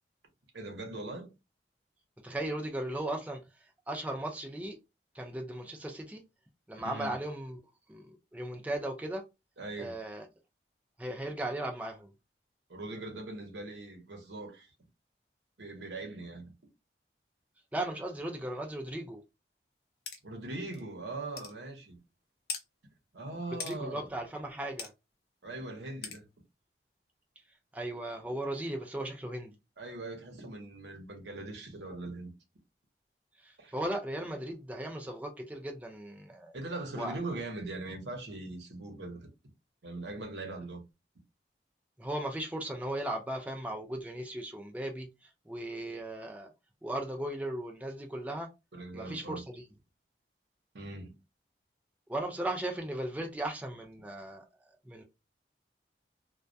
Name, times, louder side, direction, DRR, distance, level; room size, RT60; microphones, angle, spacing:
voice 1, 0.5-1.3 6.8-7.2 9.6-10.0 12.7-14.7 15.6-16.5 20.2-22.0 23.1-24.1 25.4-26.3 29.8-32.3 33.6-33.7 36.5-39.2 39.8-40.8 48.7-49.4 50.7-51.1, right 2 dB, 90° right, 0.8 m, -41 dB
voice 2, 2.2-4.8 5.1-6.2 6.7-7.6 7.9-9.2 9.8-10.3 11.0-12.1 17.7-19.2 23.6-24.9 27.7-29.5 33.4-36.6 36.9-37.2 42.0-46.5 46.8-48.5 48.9-49.6 52.1-54.4 54.9-55.0, right 1 dB, 10° right, 0.3 m, -37 dB
sound 1, 20.1-20.2 20.7-20.8 21.4-21.5 22.5-22.6 23.6-23.8 24.8-24.9 26.0-26.2, left 6 dB, 65° left, 0.6 m, -39 dB
2.2 x 2.1 x 2.5 m
head